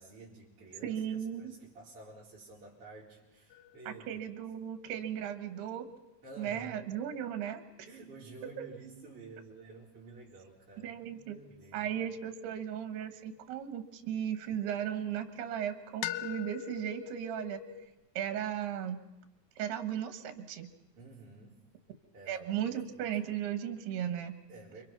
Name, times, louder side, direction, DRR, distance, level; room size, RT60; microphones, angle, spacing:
voice 1, 0.0-4.2 6.2-6.9 7.8-11.9 21.0-21.6 22.1-23.1 24.5-24.8, right 3 dB, 35° right, -8 dB, 5.0 m, -51 dB
voice 2, 0.8-1.5 3.9-5.9 6.4-7.6 8.6-8.7 10.8-11.4 11.7-17.6 18.2-19.0 19.6-20.7 22.3-24.4, right 9 dB, 85° right, 9 dB, 3.5 m, -36 dB
sound 1, 3.5-7.8 12.1-14.6 16.0-17.9, left 11 dB, 70° left, 2.4 m, -44 dB
29.0 x 24.5 x 6.0 m, 0.99 s
omnidirectional pair, 4.6 m